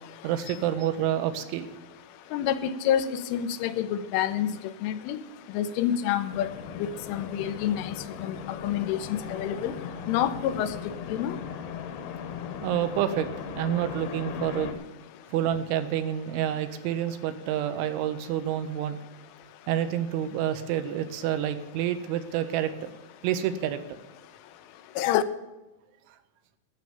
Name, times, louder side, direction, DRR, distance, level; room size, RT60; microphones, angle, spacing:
voice 1, 0.2-1.7 12.6-14.7 15.3-19.0 19.7-22.9 23.2-24.0, right 10 dB, 80° right, 9 dB, 3.2 m, -28 dB
voice 2, 2.3-4.5 4.8-5.2 5.5-6.5 6.8-8.0 8.2-8.4 8.6-9.7 10.1-10.8 11.1-11.4 25.0-25.2, left 10 dB, 90° left, 11 dB, 3.2 m, -27 dB
sound 1, 6.3-14.7, left 7 dB, 70° left, 2.6 m, -38 dB
13.0 x 6.8 x 9.0 m, 1.0 s
omnidirectional pair, 5.7 m